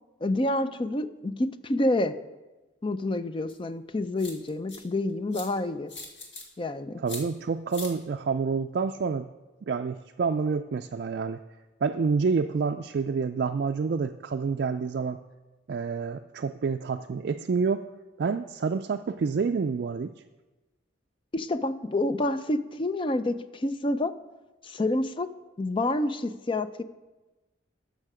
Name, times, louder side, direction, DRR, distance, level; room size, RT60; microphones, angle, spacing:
voice 1, 0.2-2.2 2.8-5.9 6.6-7.0 21.3-24.1 24.6-25.3 25.6-26.8, left 1 dB, 25° left, 12 dB, 0.4 m, -28 dB
sound 1, 3.5-3.6 4.2-4.8 5.3-5.5 5.9-6.4 7.1-7.2 7.7-7.9, left 3 dB, 65° left, 1.9 m, -40 dB
voice 2, 7.0-9.3 9.7-11.4 11.8-15.2 15.7-17.9 18.2-20.1, right 5 dB, 55° right, 5 dB, 0.3 m, -28 dB
13.0 x 6.5 x 4.9 m, 1.1 s
head